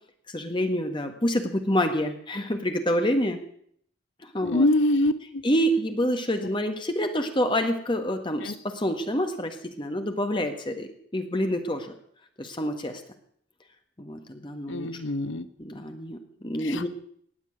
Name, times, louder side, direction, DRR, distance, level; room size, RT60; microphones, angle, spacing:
voice 1, 0.3-3.4 4.3-4.7 5.4-11.9 12.4-13.0 14.0-14.9 15.6-16.9, equal, 25° left, 6 dB, 1.6 m, -27 dB
voice 2, 4.4-5.4 8.4-8.5 14.7-15.5 16.6-16.9, left 1 dB, 75° left, 13 dB, 0.8 m, -24 dB
18.5 x 7.4 x 9.0 m, 0.65 s
head